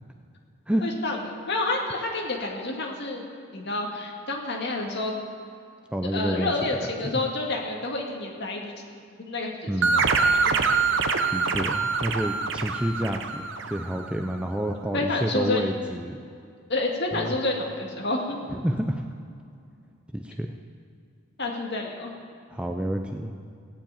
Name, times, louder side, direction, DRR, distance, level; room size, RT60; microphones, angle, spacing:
voice 1, 0.8-1.2 1.5-3.2 3.5-5.2 6.1-8.8 9.2-10.0 10.4-10.6 14.9-15.7 16.7-18.4 21.4-22.1, left 2 dB, 50° left, 0 dB, 2.0 m, -29 dB
voice 2, 5.9-6.5 6.8-7.2 9.7-10.1 11.3-13.5 13.7-16.2 17.1-17.3 18.5-19.0 20.1-20.5 22.5-23.3, equal, 5° right, 3 dB, 0.5 m, -29 dB
sound 1, 9.8-14.1, right 5 dB, 55° right, 0.8 m, -25 dB
16.5 x 7.5 x 8.9 m, 2.4 s
head